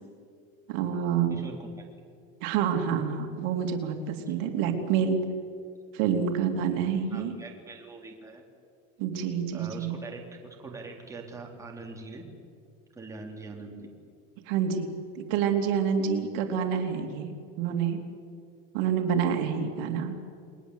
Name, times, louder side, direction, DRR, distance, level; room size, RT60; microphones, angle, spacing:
voice 1, 0.7-1.4 2.4-5.2 5.9-7.3 9.0-10.0 14.5-18.0 18.7-20.1, right 7 dB, 70° right, 4 dB, 3.3 m, -28 dB
voice 2, 1.3-1.9 4.3-4.4 7.1-8.5 9.5-12.3 12.9-13.9, right 3 dB, 10° right, 0 dB, 3.9 m, -43 dB
30.0 x 21.0 x 8.3 m, 2.3 s
cardioid pair, 145°, 29 cm